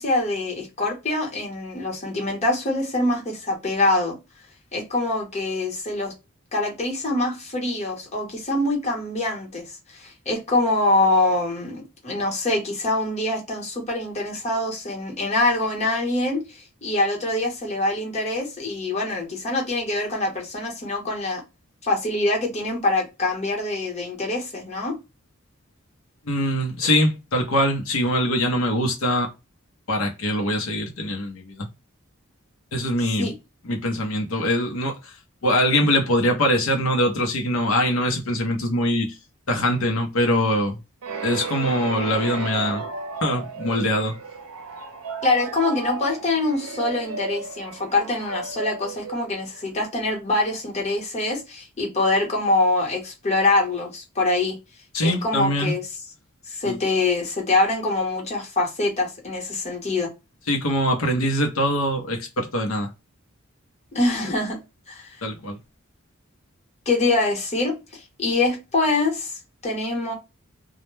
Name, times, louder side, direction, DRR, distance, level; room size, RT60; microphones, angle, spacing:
voice 1, 0.0-4.2 4.7-6.1 6.5-9.6 9.9-21.4 21.8-25.0 33.2-33.3 45.2-54.5 55.0-55.8 56.5-60.1 63.9-64.6 64.9-65.1 66.9-70.1, left 2 dB, 35° left, 1.0 m, -24 dB
voice 2, 26.3-29.3 29.9-31.7 32.7-33.3 33.6-35.1 35.4-39.2 39.5-40.8 41.2-42.8 43.2-44.1 54.9-55.7 56.6-56.8 60.5-62.9 65.2-65.6, left 1 dB, 70° left, 0.6 m, -23 dB
sound 1, 41.0-49.8, right 4 dB, 80° right, 0.6 m, -33 dB
2.1 x 2.1 x 3.0 m
head